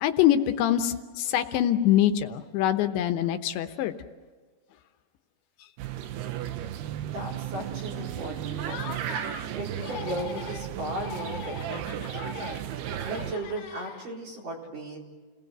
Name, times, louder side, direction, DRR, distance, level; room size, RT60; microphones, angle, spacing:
voice 1, 0.0-3.9, left 11 dB, 80° left, 8 dB, 3.2 m, -24 dB
sound 1, 5.8-13.3, right 11 dB, 75° right, 2.7 m, -34 dB
voice 2, 7.0-8.9 9.5-12.5 13.0-15.0, right 1 dB, 50° right, -2 dB, 5.5 m, -36 dB
Laughter, 8.6-9.5 9.8-10.7 11.0-14.3, left 7 dB, 60° left, 3.2 m, -41 dB
30.0 x 19.5 x 8.0 m, 1.4 s
omnidirectional pair, 5.2 m